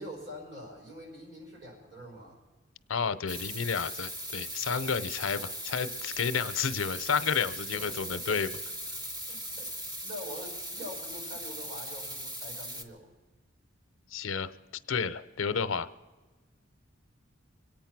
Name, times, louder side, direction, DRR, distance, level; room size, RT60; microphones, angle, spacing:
voice 1, 0.0-2.4 5.3-5.6 7.7-8.5 9.2-13.1, equal, 55° right, -1 dB, 5.6 m, -45 dB
voice 2, 2.9-8.5 14.1-14.5 14.9-15.9, left 6 dB, 85° left, 13 dB, 0.7 m, -31 dB
sound 1, 3.3-12.8, equal, 20° right, 1.1 m, -39 dB
24.5 x 9.0 x 6.0 m, 1.2 s
head